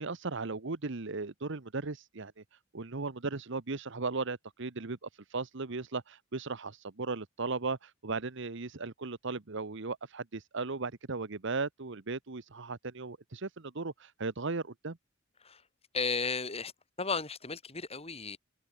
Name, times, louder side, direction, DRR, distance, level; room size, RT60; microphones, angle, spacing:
voice 1, 0.0-15.0, right 3 dB, 60° right, 1.1 m, -37 dB
voice 2, 15.9-16.7 17.0-18.4, left 4 dB, 30° left, 6.0 m, -34 dB
head